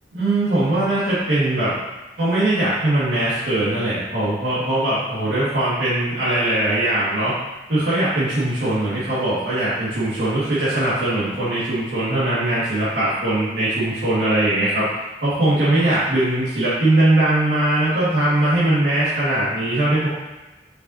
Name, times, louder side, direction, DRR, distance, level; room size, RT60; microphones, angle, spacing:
voice 1, 0.1-1.7 2.2-7.3 7.7-14.9 15.2-20.1, right 1 dB, 70° right, -12 dB, 2.0 m, -20 dB
6.4 x 6.0 x 2.8 m, 1.1 s
head